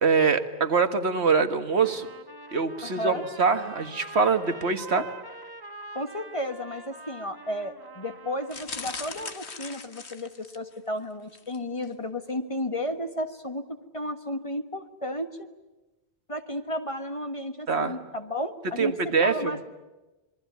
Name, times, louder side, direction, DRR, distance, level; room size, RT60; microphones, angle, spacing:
voice 1, 0.0-2.1 2.5-5.1 17.7-17.9 18.8-19.7, right 5 dB, 75° right, 9 dB, 1.8 m, -24 dB
Trumpet, 1.8-8.9, right 2 dB, 20° right, 1.5 m, -44 dB
voice 2, 2.8-3.2 5.9-13.7 13.9-15.5 16.3-19.0 19.2-19.7, left 1 dB, 30° left, 7 dB, 1.6 m, -33 dB
sound 1, 8.5-10.8 11.3-11.6 11.8-11.9, left 5 dB, 80° left, 1.8 m, -39 dB
27.0 x 22.5 x 9.4 m, 1.1 s
omnidirectional pair, 1.1 m